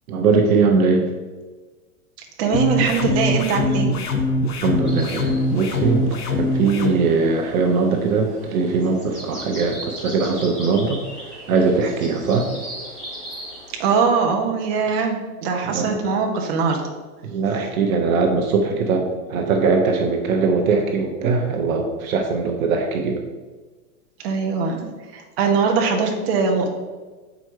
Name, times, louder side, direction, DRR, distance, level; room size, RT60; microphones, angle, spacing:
voice 1, 0.1-1.1 4.6-6.0 6.4-12.5 15.7-16.0 17.2-23.2, right 4 dB, 65° right, 3 dB, 1.2 m, -21 dB
voice 2, 2.4-3.9 13.8-16.8 24.2-24.8 25.1-26.7, right 5 dB, 45° right, 1 dB, 1.4 m, -21 dB
sound 1, 2.5-6.9, left 2 dB, 90° left, 1.6 m, -22 dB
sound 2, 4.8-14.1, right 1 dB, ahead, 0.3 m, -38 dB
7.6 x 5.3 x 4.8 m, 1.3 s
supercardioid pair, 160°, 45 cm